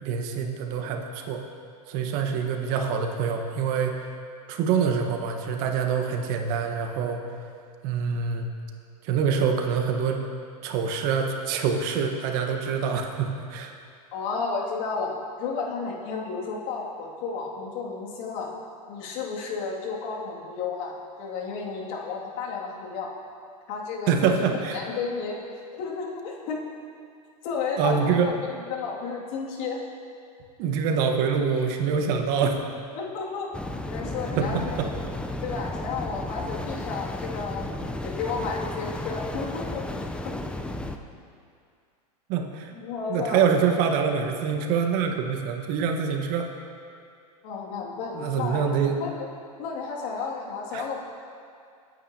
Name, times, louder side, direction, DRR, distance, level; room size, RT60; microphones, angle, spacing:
voice 1, 0.0-1.4 1.9-4.1 4.5-7.2 7.8-8.5 9.0-10.3 10.6-13.7 24.1-24.8 27.8-28.3 30.6-32.6 34.3-34.9 42.3-42.7 43.1-46.5 48.1-49.0 50.7-50.8, right 6 dB, 50° right, 4 dB, 1.3 m, -25 dB
voice 2, 14.1-15.1 15.4-18.5 18.9-23.1 23.7-24.3 24.7-25.4 25.7-26.6 27.4-29.8 32.9-33.5 33.9-34.7 35.4-37.8 38.0-39.8 40.2-40.3 42.7-43.4 47.4-49.3 49.6-51.0, left 5 dB, 55° left, -3 dB, 2.4 m, -32 dB
sound 1, 33.5-41.0, left 1 dB, 5° left, 0.6 m, -33 dB
22.0 x 9.4 x 2.9 m, 2.3 s
hypercardioid pair, 110°, 20 cm